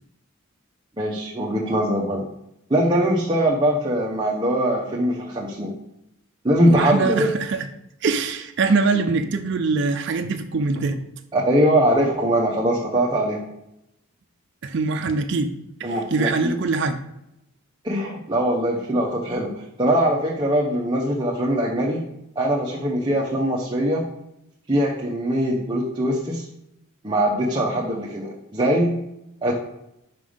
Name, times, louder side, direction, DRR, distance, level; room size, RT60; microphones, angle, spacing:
voice 1, 1.0-2.2 2.7-5.7 6.4-7.3 11.3-13.4 15.8-16.5 17.8-19.5 19.8-22.0 22.4-24.0 24.7-26.5 27.0-29.0 29.4-29.5, right 1 dB, 20° right, -3 dB, 0.8 m, -22 dB
voice 2, 6.7-7.7 8.0-11.0 14.6-15.5 15.8-17.0, right 4 dB, 55° right, 6 dB, 0.5 m, -23 dB
5.5 x 5.1 x 5.0 m, 0.83 s
head